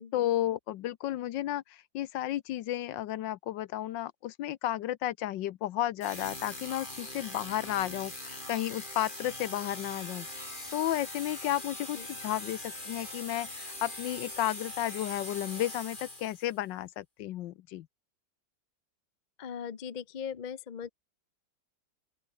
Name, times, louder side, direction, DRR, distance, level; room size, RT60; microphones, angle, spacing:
voice 1, 0.1-10.3 10.7-17.9, left 13 dB, 75° left, 1.3 m, -33 dB
sound 1, 6.0-16.6, left 1 dB, 25° left, 6.3 m, -42 dB
voice 2, 19.4-20.9, left 7 dB, 45° left, 0.6 m, -39 dB
open air
omnidirectional pair, 2.1 m